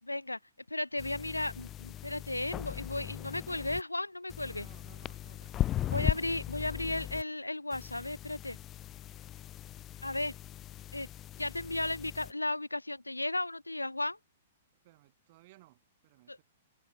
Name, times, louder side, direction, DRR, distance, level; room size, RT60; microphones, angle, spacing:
voice 1, 0.0-0.4 0.7-4.7 5.9-8.6 10.0-10.3 10.9-11.1 11.4-14.2 16.3-16.4, left 2 dB, 85° left, 1.0 m, -35 dB
sound 1, 1.0-3.8 4.3-7.2 7.7-12.3, left 12 dB, 25° left, 0.8 m, -38 dB
voice 2, 4.4-6.1 14.8-16.4, right 19 dB, 40° right, 5.5 m, -60 dB
figure-of-eight pair, 110°, 0 cm